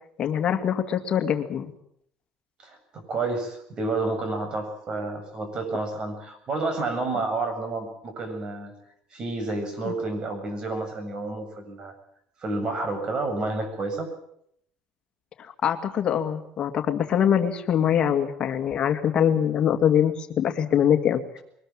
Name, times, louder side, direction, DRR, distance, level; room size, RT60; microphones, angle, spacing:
voice 1, 0.2-1.7 9.8-9.9 15.4-21.4, left 9 dB, 45° left, 7 dB, 2.2 m, -23 dB
voice 2, 2.6-8.7 9.1-11.9 12.4-14.1, right 3 dB, 40° right, 7 dB, 7.7 m, -30 dB
22.5 x 20.0 x 8.9 m, 0.72 s
cardioid pair, 120°, 2 cm